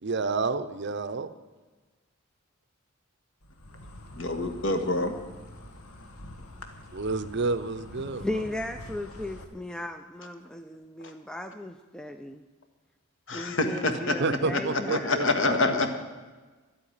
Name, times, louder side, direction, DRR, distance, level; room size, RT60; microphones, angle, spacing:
voice 1, 0.0-1.3 6.9-8.4 14.2-16.0, right 3 dB, 50° right, 12 dB, 0.6 m, -30 dB
Insect, 3.4-9.4, left 1 dB, 80° left, 1.5 m, -45 dB
voice 2, 4.1-5.1 13.3-16.0, left 2 dB, 60° left, 7 dB, 1.5 m, -27 dB
voice 3, 8.1-12.4 13.3-15.3, left 1 dB, 5° left, 7 dB, 0.4 m, -36 dB
12.0 x 8.7 x 10.0 m, 1.3 s
head